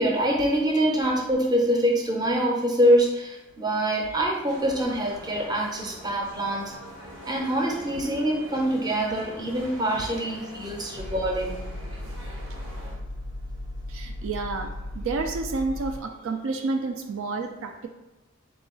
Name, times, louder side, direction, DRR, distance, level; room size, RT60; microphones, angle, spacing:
voice 1, 0.0-6.7 7.2-11.6, right 1 dB, 20° right, -1 dB, 0.6 m, -25 dB
sound 1, 4.5-13.0, right 1 dB, 85° right, 1.1 m, -43 dB
sound 2, 10.9-16.0, left 1 dB, 55° left, 0.4 m, -36 dB
voice 2, 13.9-17.9, right 3 dB, 70° right, 5 dB, 0.4 m, -30 dB
3.9 x 2.4 x 3.7 m, 1.0 s
head